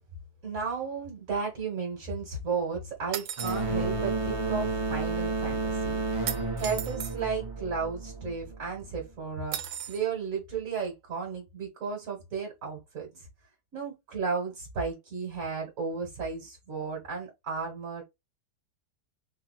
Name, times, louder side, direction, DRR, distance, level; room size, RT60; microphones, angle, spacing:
voice 1, 0.4-13.3 13.7-18.0, right 5 dB, 55° right, 1.8 m, -34 dB
sound 1, 3.1-3.6 6.3-7.2 9.5-10.0, right 10 dB, 70° right, 1.1 m, -35 dB
sound 2, 3.4-8.8, right 3 dB, 25° right, 0.8 m, -31 dB
3.8 x 2.7 x 4.0 m
omnidirectional pair, 1.8 m